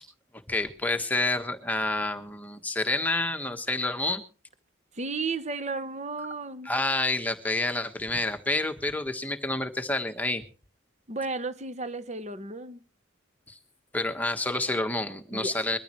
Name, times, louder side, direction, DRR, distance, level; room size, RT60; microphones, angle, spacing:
voice 1, 0.5-4.2 6.6-10.4 13.5-13.6 13.9-15.8, left 2 dB, 10° left, 1.3 m, -28 dB
voice 2, 4.9-6.7 11.1-12.8 15.3-15.6, right 3 dB, 35° right, 1.0 m, -33 dB
22.0 x 14.0 x 3.1 m
head